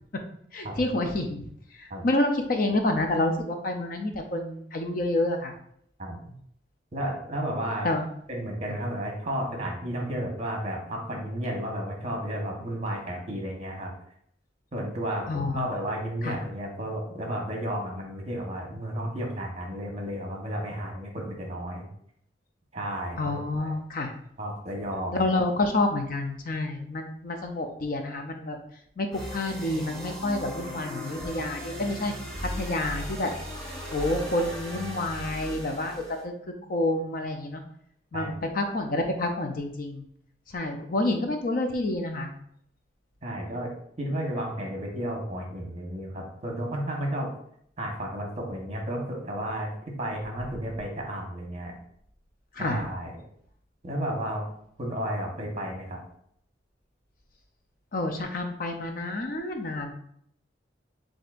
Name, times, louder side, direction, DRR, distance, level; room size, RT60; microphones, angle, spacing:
voice 1, 0.5-1.5 1.7-5.5 7.8-8.0 15.3-15.7 16.2-16.4 23.2-24.1 25.1-28.6 29.0-32.1 32.4-33.3 33.9-36.3 36.7-37.6 38.1-40.0 40.5-42.3 52.5-52.8 57.9-59.9, left 2 dB, 50° left, 5 dB, 0.5 m, -28 dB
voice 2, 6.0-6.3 6.9-7.9 8.3-13.9 14.7-21.9 22.7-23.7 24.4-25.2 38.1-38.3 43.2-43.7 44.0-47.3 47.8-49.7 50.0-51.7 52.6-53.1 53.8-54.5 54.8-56.0, right 1 dB, 35° right, 0 dB, 1.1 m, -32 dB
sound 1, 29.1-36.2, equal, 5° left, 1.0 m, -37 dB
7.6 x 2.7 x 2.5 m, 0.67 s
head